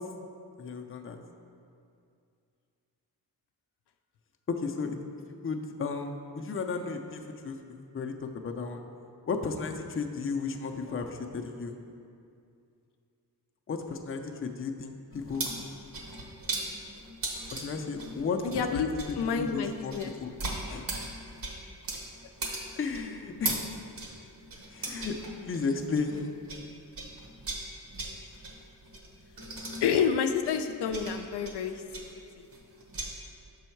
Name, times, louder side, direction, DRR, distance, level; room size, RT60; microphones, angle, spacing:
voice 1, 0.6-1.2 4.5-5.0 5.4-7.6 7.9-8.8 9.3-11.7 13.7-15.5 17.5-18.8 19.3-19.9 20.2-20.3 20.7-20.9 22.8-23.7 24.7-25.2 25.4-26.3, left 4 dB, 35° left, 4 dB, 0.5 m, -34 dB
sound 1, 15.1-26.7 26.9-33.1, right 2 dB, 55° right, 1.1 m, -38 dB
voice 2, 18.4-20.1 29.8-31.8 32.4-32.5, left 6 dB, 80° left, 6 dB, 0.5 m, -29 dB
6.2 x 5.5 x 4.5 m, 2.5 s
wide cardioid pair, 100°, 40 cm